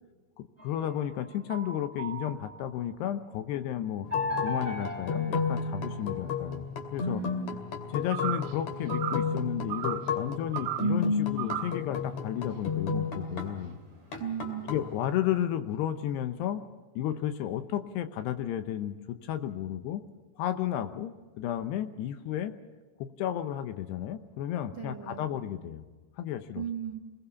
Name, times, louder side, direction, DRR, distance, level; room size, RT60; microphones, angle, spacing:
voice 1, 0.4-4.1 4.4-6.7 6.9-7.2 7.9-13.8 14.7-16.6 17.0-20.0 20.4-22.5 23.0-25.8 26.2-26.6, left 11 dB, 80° left, 9 dB, 2.9 m, -33 dB
sound 1, 0.6-2.8 4.1-6.4, left 2 dB, 5° left, 3.2 m, -37 dB
sound 2, 4.0-13.7 14.1-15.4, left 4 dB, 45° left, 3.3 m, -33 dB
voice 2, 7.0-7.6 14.2-14.7 24.7-25.3 26.5-27.0, right 9 dB, 60° right, 5 dB, 1.2 m, -37 dB
sound 3, 8.1-8.6 8.9-9.3 9.7-10.1 10.5-11.0 11.4-11.8, right 12 dB, 75° right, 2.2 m, -34 dB
26.5 x 20.0 x 7.0 m, 1.3 s
omnidirectional pair, 5.0 m